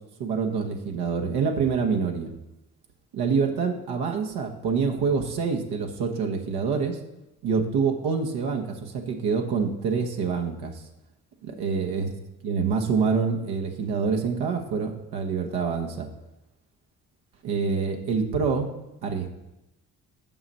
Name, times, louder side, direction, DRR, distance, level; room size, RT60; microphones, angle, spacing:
voice 1, 0.2-2.3 3.1-7.0 7.4-10.8 11.4-12.1 12.4-16.1 17.4-18.7 19.0-19.3, right 5 dB, 60° right, 2 dB, 1.3 m, -26 dB
7.3 x 6.0 x 5.5 m, 0.95 s
figure-of-eight pair, 45°, 43 cm